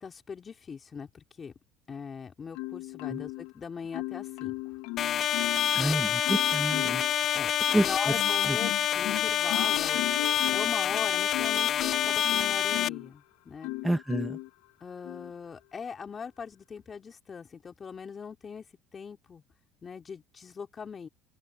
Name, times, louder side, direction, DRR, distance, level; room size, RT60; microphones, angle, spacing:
voice 1, 0.0-1.5 1.9-4.5 5.8-6.0 7.3-10.1 10.5-13.7 14.8-18.6 18.9-19.4 19.8-21.1, left 6 dB, 30° left, 3.2 m, -40 dB
Marimba xylophone, 2.5-3.5 3.9-5.8 6.2-7.1 7.7-13.1 13.6-14.5 15.0-15.3, left 21 dB, 80° left, 1.1 m, -37 dB
sound 1, 5.0-12.9, left 10 dB, 45° left, 0.4 m, -27 dB
voice 2, 5.7-7.0 7.7-8.1 8.5-8.6 13.8-14.4, right 1 dB, 5° right, 1.4 m, -29 dB
open air
supercardioid pair, 100°, 0 cm